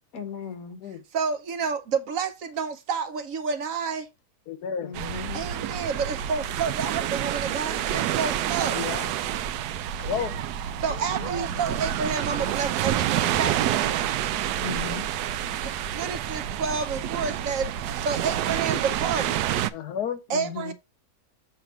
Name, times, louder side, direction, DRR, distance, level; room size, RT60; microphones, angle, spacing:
voice 1, 0.1-0.8 4.8-5.4 11.1-11.6 14.6-15.1 20.3-20.7, left 6 dB, 65° left, 1.5 m, -36 dB
voice 2, 1.1-4.1 5.3-8.8 10.8-14.0 15.6-19.4 20.3-20.7, right 5 dB, 65° right, 1.0 m, -30 dB
voice 3, 4.5-5.0 7.9-8.0 8.7-9.1 10.0-10.5 19.7-20.2, left 8 dB, 80° left, 1.4 m, -32 dB
sound 1, 4.9-19.7, right 11 dB, 90° right, 1.1 m, -28 dB
7.4 x 2.9 x 5.9 m
omnidirectional pair, 1.7 m